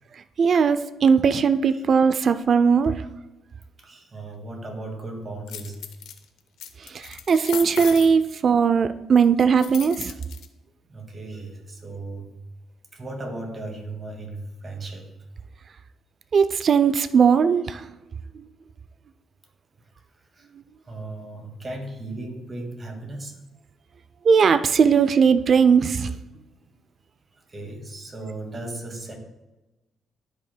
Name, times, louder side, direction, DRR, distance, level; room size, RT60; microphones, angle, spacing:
voice 1, 0.4-2.9 6.9-10.1 16.3-17.9 24.2-26.1, right 6 dB, 50° right, 11 dB, 0.3 m, -19 dB
voice 2, 3.8-5.8 10.9-12.4 12.9-15.2 19.8-20.5 20.8-23.4 27.3-29.1, right 2 dB, 30° right, 2 dB, 1.9 m, -36 dB
sound 1, 5.5-6.2 6.6-8.1 9.6-10.5, left 9 dB, 80° left, 0.6 m, -36 dB
13.0 x 5.5 x 2.2 m, 1.0 s
cardioid pair, 90°, 0 cm